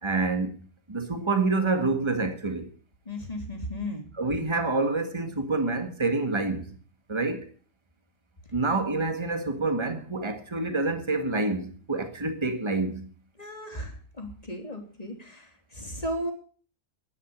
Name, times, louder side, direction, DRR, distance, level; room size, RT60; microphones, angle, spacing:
voice 1, 0.0-0.6 0.9-2.7 4.2-6.7 7.1-7.5 8.5-13.1, right 3 dB, 20° right, 1.9 m, -27 dB
voice 2, 3.1-4.0 13.4-16.3, equal, 25° left, 3.5 m, -35 dB
11.5 x 11.0 x 8.8 m
omnidirectional pair, 1.5 m